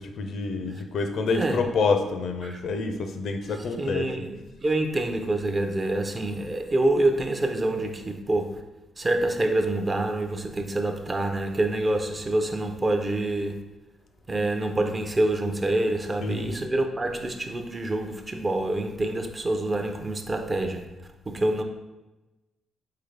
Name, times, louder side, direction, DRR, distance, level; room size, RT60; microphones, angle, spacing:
voice 1, 0.0-4.1 16.2-16.5, left 4 dB, 70° left, 0.5 m, -27 dB
voice 2, 3.8-8.6 9.0-13.6 14.3-20.8 21.3-21.6, right 2 dB, 25° right, 0.5 m, -26 dB
4.0 x 3.8 x 3.3 m
cardioid pair, 90°, 0 cm